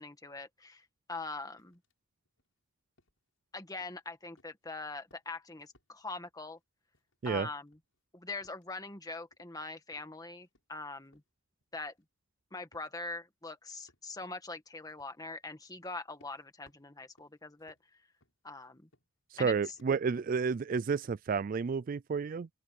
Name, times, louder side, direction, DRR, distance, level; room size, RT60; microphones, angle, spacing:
voice 1, 0.0-1.8 3.5-6.6 7.2-7.8 8.1-11.2 11.7-11.9 12.5-17.7 18.4-18.9 19.4-19.6, left 3 dB, 20° left, 1.8 m, -43 dB
sound 1, 1.6-1.9 2.3-2.5 3.0-3.4 3.8-4.1 4.4-4.7 5.0-5.9 6.3-6.6 6.9-7.4 7.6-9.0 9.3-9.7 9.9-10.8 11.0-12.0 12.7-12.9 13.4-13.5 13.9-14.1 14.9-15.2 15.8-19.4 19.7-20.1 20.6-21.4, left 1 dB, 90° left, 7.6 m, -70 dB
voice 2, 19.4-22.5, right 5 dB, 45° right, 0.3 m, -31 dB
open air
head